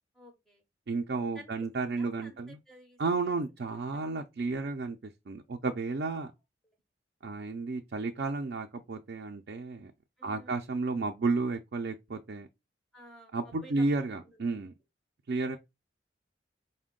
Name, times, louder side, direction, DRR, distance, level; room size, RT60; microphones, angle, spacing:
voice 1, 0.1-0.6 1.3-2.4 2.7-3.4 3.9-4.1 6.6-6.7 10.2-10.6 12.9-13.9 14.3-14.4, right 1 dB, ahead, 0.5 m, -53 dB
voice 2, 0.9-2.6 3.0-6.3 7.2-9.9 10.2-12.5 13.3-14.7 15.3-15.6, right 3 dB, 60° right, 0.4 m, -32 dB
5.0 x 2.2 x 3.6 m
head